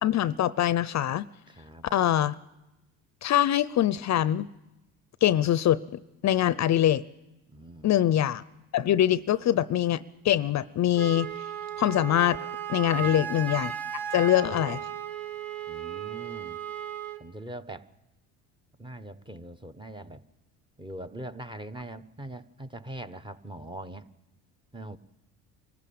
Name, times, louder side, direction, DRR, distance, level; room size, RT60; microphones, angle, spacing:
voice 1, 0.0-1.2 1.9-2.4 3.2-4.5 5.2-5.8 6.2-7.0 7.8-8.4 8.7-11.3 11.8-12.4 12.7-13.7 14.1-14.8, left 12 dB, 50° left, 18 dB, 0.6 m, -23 dB
voice 2, 1.5-1.9 7.5-7.9 13.0-13.2 14.5-14.8 15.7-16.6 17.2-17.9 18.8-20.2 20.8-24.1 24.7-25.0, right 1 dB, 15° right, 9 dB, 1.1 m, -42 dB
Wind instrument woodwind instrument, 10.9-17.2, right 9 dB, 70° right, 1.7 m, -35 dB
24.5 x 14.5 x 8.6 m, 0.97 s
supercardioid pair, 85°, 36 cm